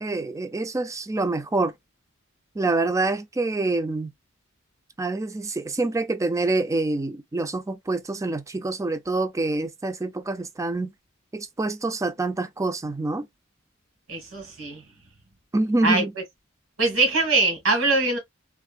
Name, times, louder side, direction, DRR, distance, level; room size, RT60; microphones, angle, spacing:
voice 1, 0.0-1.7 2.5-4.1 5.0-10.9 11.3-13.3 15.5-16.1, right 2 dB, 15° right, 0.4 m, -26 dB
voice 2, 14.1-14.8 15.8-16.0 16.8-18.2, right 3 dB, 85° right, 1.8 m, -22 dB
3.5 x 2.6 x 2.4 m
head